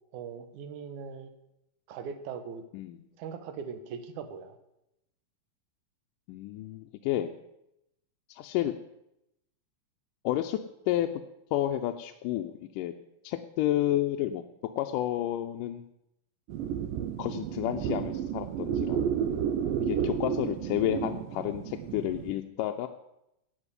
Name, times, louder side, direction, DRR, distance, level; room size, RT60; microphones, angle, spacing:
voice 1, 0.1-1.3 1.9-2.6 3.2-4.6 19.9-20.1, right 6 dB, 65° right, 8 dB, 2.5 m, -40 dB
voice 2, 6.3-7.3 8.3-8.8 10.2-10.6 10.9-11.1 11.5-12.9 13.2-14.4 14.8-15.9 17.2-19.0 19.8-22.9, left 13 dB, 80° left, 5 dB, 2.2 m, -30 dB
sound 1, 16.5-22.4, right 8 dB, 85° right, 2.7 m, -31 dB
16.0 x 5.6 x 9.9 m, 0.85 s
omnidirectional pair, 3.9 m